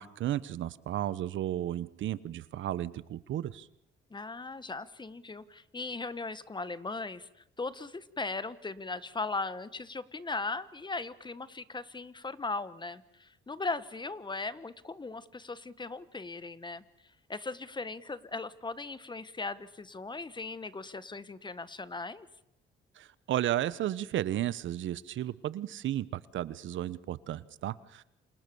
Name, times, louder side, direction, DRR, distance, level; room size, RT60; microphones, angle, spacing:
voice 1, 0.0-3.7 23.0-28.0, right 12 dB, 75° right, 17 dB, 1.1 m, -33 dB
voice 2, 4.1-7.3 7.6-16.8 17.3-22.3, left 3 dB, 20° left, 15 dB, 1.4 m, -38 dB
29.0 x 27.5 x 7.1 m, 0.82 s
cardioid pair, 90°, 20 cm